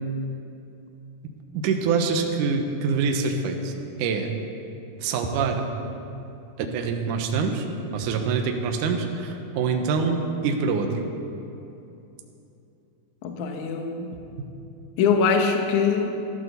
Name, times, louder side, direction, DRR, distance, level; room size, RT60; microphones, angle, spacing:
voice 1, 1.5-3.7 4.0-4.3 5.0-5.7 6.6-7.7 7.9-10.9, right 5 dB, 75° right, 3 dB, 1.9 m, -25 dB
voice 2, 13.2-14.1 15.0-16.1, left 5 dB, 75° left, 3 dB, 1.8 m, -23 dB
14.5 x 12.5 x 6.9 m, 2.8 s
omnidirectional pair, 5.1 m